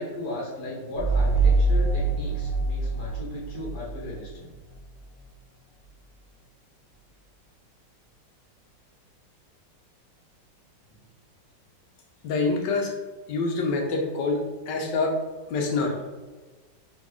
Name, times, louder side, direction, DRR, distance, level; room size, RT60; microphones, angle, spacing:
voice 1, 0.0-4.5, left 1 dB, 60° left, -5 dB, 1.6 m, -36 dB
sound 1, 1.0-4.3, right 3 dB, 25° left, 1.4 m, -24 dB
voice 2, 12.2-12.9 13.3-15.2 15.5-16.0, left 3 dB, 75° left, 2 dB, 1.3 m, -26 dB
4.3 x 3.1 x 3.1 m, 1.3 s
omnidirectional pair, 2.0 m